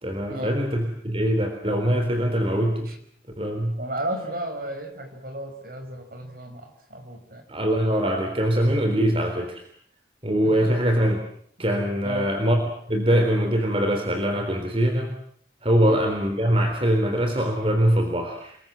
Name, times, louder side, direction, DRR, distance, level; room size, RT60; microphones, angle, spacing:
voice 1, 0.0-2.9 3.4-3.8 7.5-9.6 10.2-11.2 11.6-12.6 12.9-15.1 15.6-18.6, equal, 30° right, 4 dB, 3.7 m, -23 dB
voice 2, 3.8-7.4 10.4-10.7 12.0-12.3 15.8-16.0, right 1 dB, 50° right, 6 dB, 5.6 m, -34 dB
30.0 x 22.0 x 7.7 m, 0.63 s
head